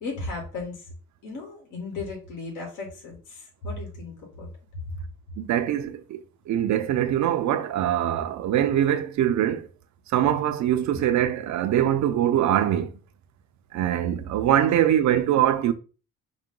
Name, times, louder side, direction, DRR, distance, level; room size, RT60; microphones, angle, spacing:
voice 1, 0.0-0.9 1.2-4.5, left 3 dB, 85° left, 1.8 m, -35 dB
voice 2, 5.4-9.7 10.1-12.9 13.7-15.7, right 11 dB, 70° right, 0.6 m, -23 dB
4.9 x 2.2 x 3.7 m
cardioid pair, 90°, 30 cm